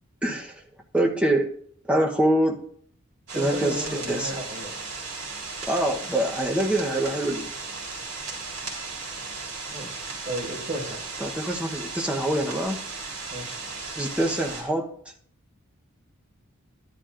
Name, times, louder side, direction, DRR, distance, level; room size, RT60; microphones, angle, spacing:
voice 1, 0.2-0.6 0.9-1.5 1.9-2.7 3.3-4.4 5.6-7.5 11.2-12.8 14.0-14.9, right 1 dB, 5° right, 0 dB, 0.9 m, -25 dB
voice 2, 3.3-4.7 9.7-11.0 13.3-13.6, right 1 dB, 35° right, -4 dB, 5.3 m, -34 dB
sound 1, 3.3-14.6, right 4 dB, 60° right, 3.5 m, -36 dB
13.0 x 11.0 x 2.5 m, 0.62 s
head